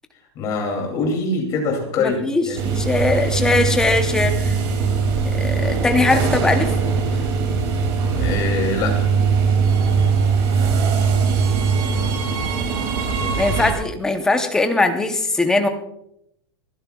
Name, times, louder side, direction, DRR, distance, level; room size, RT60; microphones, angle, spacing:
voice 1, 0.3-3.0 8.2-9.1, left 3 dB, 25° left, 1 dB, 2.6 m, -24 dB
voice 2, 2.0-4.5 5.4-6.7 13.4-15.7, left 2 dB, 5° left, 6 dB, 0.7 m, -20 dB
sound 1, 2.5-13.7, right 5 dB, 30° right, 2.4 m, -20 dB
27.5 x 11.0 x 2.3 m, 0.75 s
supercardioid pair, 180°, 14 cm